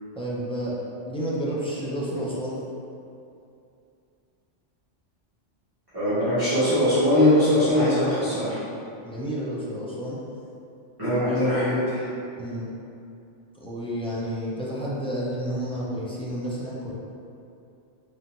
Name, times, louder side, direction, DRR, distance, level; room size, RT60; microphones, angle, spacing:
voice 1, 0.1-2.6 9.0-10.2 11.1-11.4 12.4-12.7 13.5-16.9, equal, 10° left, -8 dB, 0.3 m, -31 dB
voice 2, 5.9-8.6 11.0-12.0, left 1 dB, 20° right, -16 dB, 1.3 m, -21 dB
3.8 x 3.5 x 2.9 m, 2.6 s
omnidirectional pair, 1.3 m